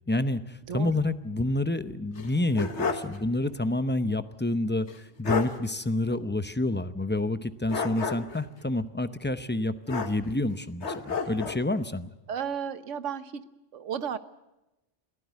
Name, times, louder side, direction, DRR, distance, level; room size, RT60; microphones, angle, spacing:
voice 1, 0.1-4.9 5.2-12.1, left 2 dB, 10° left, 11 dB, 0.6 m, -28 dB
sound 1, 2.1-3.2 3.5-3.6 4.9-5.0 5.2-5.6 7.7-8.4 9.9-10.5 10.8-11.6, left 5 dB, 70° left, 1.7 m, -31 dB
voice 2, 12.3-13.5 13.7-14.2, right 8 dB, 85° right, 13 dB, 1.3 m, -33 dB
22.0 x 15.0 x 9.3 m, 0.96 s
omnidirectional pair, 1.2 m